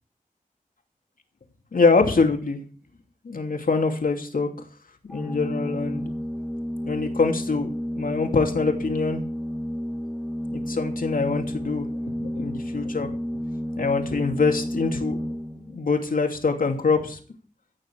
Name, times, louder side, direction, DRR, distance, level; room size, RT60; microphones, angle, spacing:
voice 1, 1.7-2.6 3.2-4.5 5.0-6.1 6.8-7.7 8.0-9.2 10.5-11.9 12.2-13.2 13.8-15.3 15.6-17.2, left 4 dB, 80° left, 4 dB, 2.8 m, -24 dB
Organ, 5.1-15.8, equal, 5° left, 1.4 m, -31 dB
16.5 x 6.9 x 8.2 m, 0.41 s
cardioid pair, 50°, 14 cm